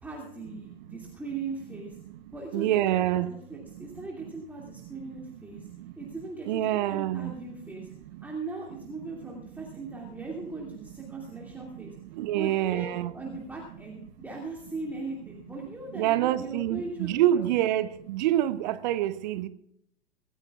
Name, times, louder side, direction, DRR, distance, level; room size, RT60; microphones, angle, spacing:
voice 1, 0.0-1.9 2.3-5.7 6.0-7.9 8.2-11.9 12.3-17.7, right 3 dB, 5° right, -2 dB, 2.5 m, -39 dB
voice 2, 2.5-3.3 5.8-5.9 6.5-7.3 12.1-13.1 15.9-19.5, right 13 dB, 45° right, 14 dB, 0.9 m, -26 dB
25.0 x 14.0 x 2.4 m, 0.72 s
figure-of-eight pair, 100°, 31 cm